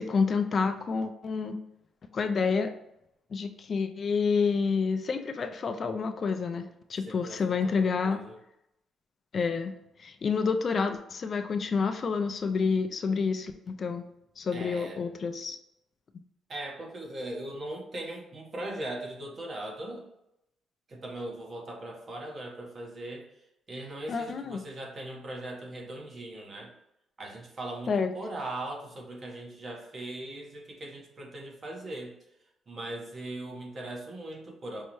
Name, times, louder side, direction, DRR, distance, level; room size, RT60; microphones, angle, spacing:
voice 1, 0.0-1.6 2.1-2.7 3.3-8.2 9.3-9.7 10.0-14.1 14.4-15.6 24.1-24.6 27.9-28.1, left 5 dB, 45° left, 7 dB, 0.4 m, -28 dB
voice 2, 7.1-8.4 14.5-15.0 16.5-20.1 20.9-23.3 23.7-26.7 27.2-32.1 32.7-34.8, right 1 dB, 40° right, 1 dB, 1.0 m, -39 dB
5.4 x 2.0 x 3.0 m, 0.82 s
cardioid pair, 90°, 0 cm